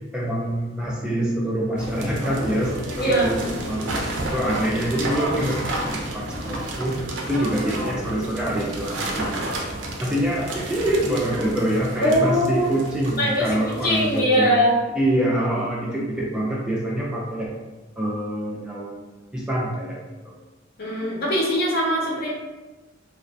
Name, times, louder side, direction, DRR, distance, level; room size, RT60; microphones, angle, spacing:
voice 1, 0.1-7.0 7.2-9.6 10.0-14.6 15.0-17.5 18.0-20.4 21.0-21.1, right 1 dB, 5° right, -5 dB, 0.3 m, -26 dB
sound 1, 1.8-14.2, right 1 dB, 70° right, 0.4 m, -31 dB
voice 2, 3.0-3.3 12.0-12.7 13.2-14.7 20.8-22.3, equal, 55° left, -3 dB, 0.7 m, -21 dB
2.3 x 2.1 x 2.6 m, 1.2 s
head